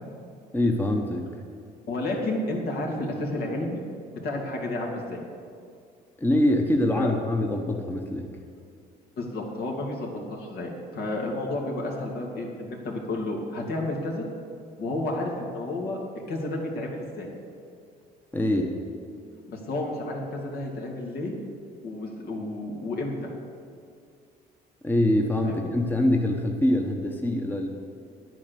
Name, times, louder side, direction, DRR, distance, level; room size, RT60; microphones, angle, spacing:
voice 1, 0.5-1.3 6.2-8.3 18.3-18.8 24.8-27.7, left 1 dB, 10° left, 3 dB, 1.0 m, -24 dB
voice 2, 1.9-3.8 4.2-5.2 7.0-7.1 9.2-14.2 14.8-16.0 16.3-17.3 19.5-21.3 21.8-23.3 25.4-25.7, left 2 dB, 70° left, 0 dB, 2.5 m, -31 dB
10.0 x 9.2 x 6.8 m, 2.3 s
cardioid pair, 110°, 17 cm